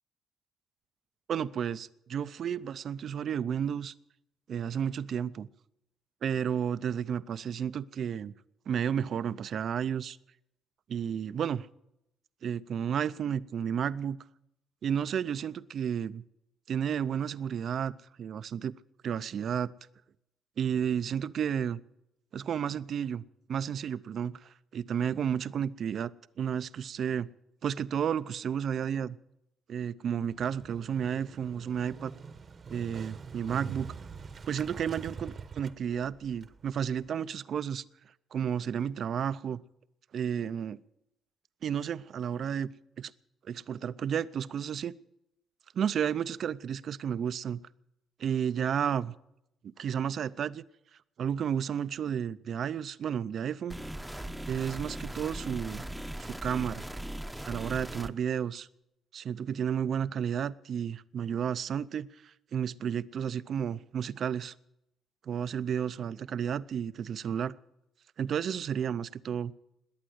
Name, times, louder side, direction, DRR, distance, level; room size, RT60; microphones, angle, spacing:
voice 1, 1.3-3.9 4.5-5.5 6.2-8.3 8.7-10.2 10.9-11.7 12.4-14.2 14.8-16.2 16.7-18.7 19.0-19.7 20.6-21.8 22.3-23.2 23.5-26.1 26.4-27.3 27.6-29.2 29.7-32.1 32.7-33.9 34.5-37.8 38.3-39.6 40.1-40.8 41.6-42.7 43.0-43.1 43.5-44.9 45.8-47.6 48.2-49.1 49.6-50.6 51.2-53.7 54.5-55.8 56.2-56.9 57.5-58.7 59.1-64.5 65.3-67.6 68.2-69.5, right 8 dB, 60° right, 16 dB, 0.5 m, -32 dB
Motorcycle, 30.3-37.1, right 5 dB, 45° right, 1.0 m, -45 dB
sound 1, 53.7-58.1, right 1 dB, 5° right, 0.8 m, -39 dB
20.5 x 8.8 x 7.9 m, 0.84 s
cardioid pair, 90°, 0 cm